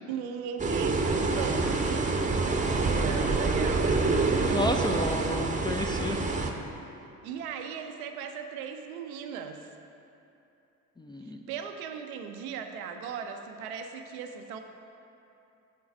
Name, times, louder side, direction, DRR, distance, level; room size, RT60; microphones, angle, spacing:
voice 1, 0.1-2.2 3.0-4.1 7.2-9.7 11.2-14.6, right 7 dB, 80° right, 5 dB, 0.6 m, -38 dB
sound 1, 0.6-6.5, right 3 dB, 20° right, 0.7 m, -26 dB
voice 2, 4.4-6.2 11.0-11.4, left 1 dB, 10° left, 3 dB, 0.3 m, -31 dB
7.3 x 3.9 x 5.9 m, 2.7 s
hypercardioid pair, 50°, 43 cm